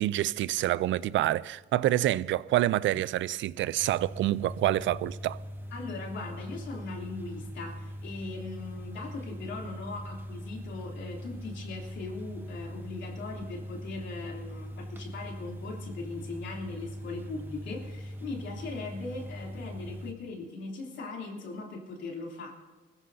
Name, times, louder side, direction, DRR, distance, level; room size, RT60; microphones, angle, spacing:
voice 1, 0.0-5.4, right 14 dB, 70° right, 0.4 m, -27 dB
sound 1, 3.8-20.1, equal, 10° right, 1.0 m, -41 dB
voice 2, 5.7-22.5, left 3 dB, 65° left, 3.0 m, -39 dB
22.5 x 15.0 x 2.7 m
cardioid pair, 90°, 20 cm